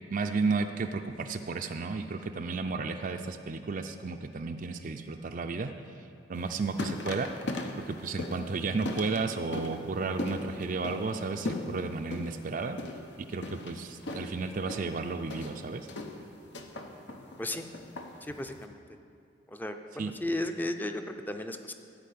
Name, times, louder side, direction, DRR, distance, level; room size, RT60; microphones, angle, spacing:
voice 1, 0.1-5.7 6.3-7.3 7.8-12.8 13.3-15.9 20.0-20.1, right 4 dB, 50° right, 6 dB, 0.5 m, -33 dB
sound 1, 6.3-18.6, left 2 dB, 70° left, 1.0 m, -39 dB
voice 2, 18.2-18.8 19.5-21.7, left 1 dB, 10° left, 6 dB, 0.6 m, -35 dB
14.0 x 4.9 x 8.5 m, 2.4 s
head